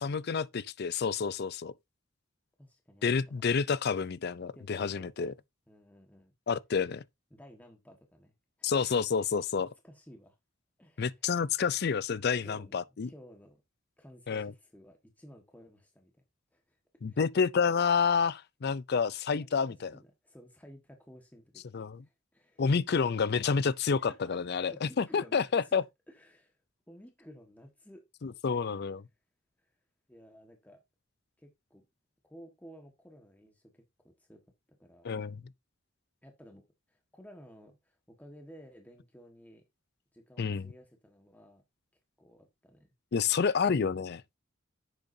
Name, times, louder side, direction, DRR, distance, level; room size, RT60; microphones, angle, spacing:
voice 1, 0.0-1.7 3.0-5.3 6.5-7.0 8.6-9.7 11.0-13.1 14.3-14.5 17.0-19.9 21.7-22.0 22.6-25.8 28.2-29.0 35.0-35.4 40.4-40.7 43.1-44.2, left 5 dB, 55° left, 0.5 m, -29 dB
voice 2, 2.6-3.4 4.5-5.3 5.7-6.3 7.3-9.3 9.6-10.4 10.8-11.2 12.4-13.6 14.0-16.1 16.5-16.8 17.1-17.2 19.4-22.6 23.6-26.6 26.9-28.0 28.4-28.7 29.6-29.7 30.1-30.8 31.4-31.8 32.2-34.4 34.8-35.3 36.2-39.6 40.1-41.6 42.2-42.9, equal, 10° left, 1.5 m, -55 dB
10.5 x 8.0 x 2.7 m
head